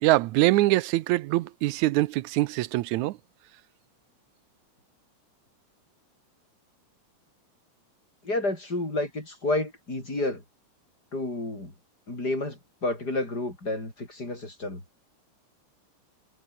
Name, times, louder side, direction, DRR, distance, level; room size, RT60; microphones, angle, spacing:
voice 1, 0.0-3.2, right 17 dB, 80° right, 2.1 m, -23 dB
voice 2, 8.2-10.4 11.1-11.7 12.1-14.8, left 2 dB, 30° left, 7.5 m, -30 dB
omnidirectional pair, 3.4 m